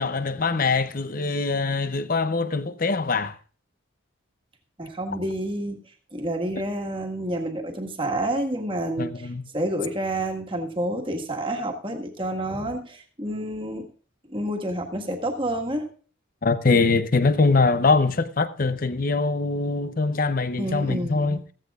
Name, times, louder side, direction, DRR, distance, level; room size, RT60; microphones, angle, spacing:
voice 1, 0.0-3.3 9.0-9.5 16.4-21.4, left 3 dB, 40° left, 0.7 m, -23 dB
voice 2, 4.8-5.8 6.1-13.9 14.3-15.9 20.6-21.4, right 1 dB, 25° right, 1.6 m, -29 dB
15.0 x 14.5 x 2.4 m
head